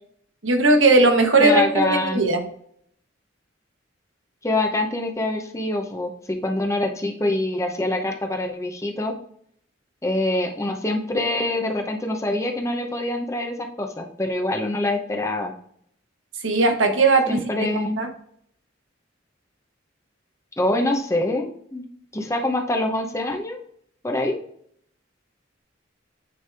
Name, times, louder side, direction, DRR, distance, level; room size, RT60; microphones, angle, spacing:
voice 1, 0.4-2.4 16.4-17.4 18.0-18.1, right 2 dB, 85° right, 5 dB, 1.1 m, -18 dB
voice 2, 1.4-2.3 4.4-9.1 10.0-15.5 17.3-18.0 20.6-21.8 22.1-23.6 24.0-24.4, left 1 dB, 15° left, 3 dB, 0.7 m, -25 dB
9.2 x 3.4 x 3.4 m, 0.66 s
head